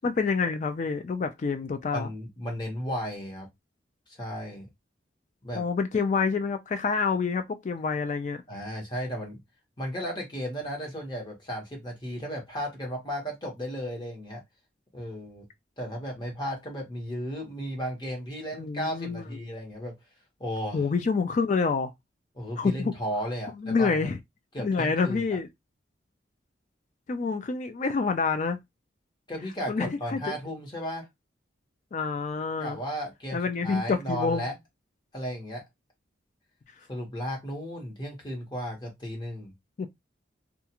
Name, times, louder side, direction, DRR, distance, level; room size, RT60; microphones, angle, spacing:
voice 1, 0.0-2.1 5.5-8.4 18.5-19.2 20.7-21.9 22.6-22.9 23.6-24.2 24.6-25.5 27.1-28.6 29.7-30.4 31.9-32.8 33.3-34.5 39.8-39.9, left 4 dB, 40° left, 0.3 m, -27 dB
voice 2, 1.9-3.5 4.2-4.7 5.4-5.6 8.5-9.4 9.8-14.4 14.9-15.5 15.8-19.9 20.4-20.8 22.3-24.1 24.5-25.4 29.3-31.1 32.6-34.5 35.1-35.6 36.9-39.5, equal, 25° left, 1.1 m, -34 dB
2.4 x 2.4 x 2.9 m
head